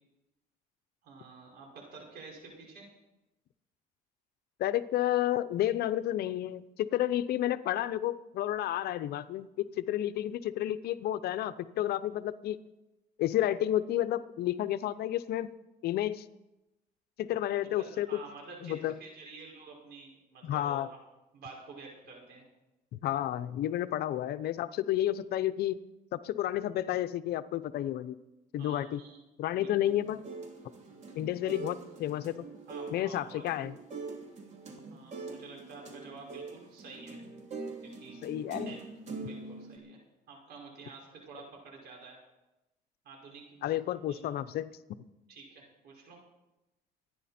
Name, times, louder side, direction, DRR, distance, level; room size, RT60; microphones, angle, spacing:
voice 1, 1.0-2.9 17.6-21.0 21.3-22.4 28.6-29.2 29.5-29.9 32.7-33.5 34.9-37.2 37.8-38.2 38.5-38.8 39.2-40.0 40.3-42.2 43.0-44.2 45.3-46.2, right 4 dB, 75° right, -1 dB, 5.5 m, -49 dB
voice 2, 4.6-12.6 13.2-15.5 15.8-16.2 17.2-18.2 18.6-18.9 20.4-20.9 23.0-25.8 26.1-28.2 28.5-29.0 29.4-30.2 31.1-32.3 32.9-33.7 38.2-38.8 43.6-44.7, left 13 dB, 70° left, 14 dB, 0.7 m, -31 dB
sound 1, 29.8-39.8, right 3 dB, 40° right, 3.1 m, -43 dB
25.5 x 10.0 x 4.3 m, 0.98 s
cardioid pair, 110°, 17 cm